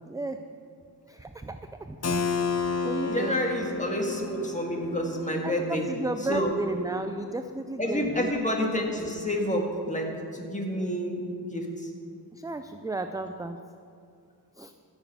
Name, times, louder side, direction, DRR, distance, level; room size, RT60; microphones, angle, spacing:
voice 1, 0.1-0.4 1.1-2.5 2.8-3.4 5.4-8.3 12.3-13.6 14.6-14.7, right 2 dB, 10° right, 8 dB, 0.3 m, -34 dB
Keyboard (musical), 2.0-7.6, left 4 dB, 40° left, 0.9 m, -32 dB
voice 2, 3.0-5.9 6.3-6.6 7.8-11.2 11.5-11.9, left 1 dB, 15° left, 1 dB, 1.8 m, -29 dB
14.5 x 7.0 x 6.8 m, 2.4 s
wide cardioid pair, 130°, 42 cm